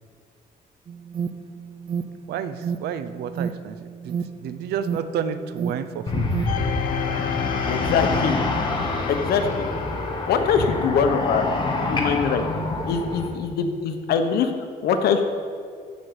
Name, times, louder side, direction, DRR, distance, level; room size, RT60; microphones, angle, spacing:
Alarm, 0.9-6.7, right 6 dB, 30° right, 0.5 m, -31 dB
voice 1, 2.3-3.8 4.0-6.3 11.8-11.9, right 8 dB, 85° right, 11 dB, 0.7 m, -30 dB
sound 1, 6.1-13.3, left 2 dB, 30° left, 1.7 m, -27 dB
sound 2, 6.5-11.3 11.8-11.9, left 9 dB, 60° left, 0.7 m, -31 dB
voice 2, 7.7-8.4 9.1-9.7 10.3-11.4 11.9-12.4 12.8-14.5 14.8-15.2, left 6 dB, 80° left, 6 dB, 1.2 m, -22 dB
13.5 x 5.3 x 8.1 m, 2.2 s
cardioid pair, 130°, 16 cm